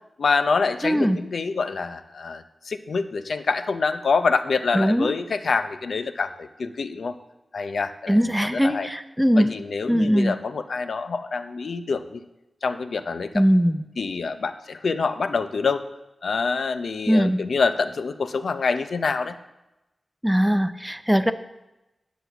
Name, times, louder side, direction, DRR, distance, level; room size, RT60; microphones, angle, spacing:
voice 1, 0.2-7.1 7.5-8.9 9.4-12.2 12.6-13.4 14.0-15.8 16.2-19.4, left 4 dB, 80° left, 9 dB, 0.6 m, -26 dB
voice 2, 0.8-1.2 4.7-5.1 8.1-9.5 9.9-10.3 13.3-13.8 17.1-17.4 20.2-21.3, equal, 5° right, 10 dB, 0.6 m, -20 dB
10.0 x 6.1 x 7.0 m, 0.97 s
wide cardioid pair, 95°, 0 cm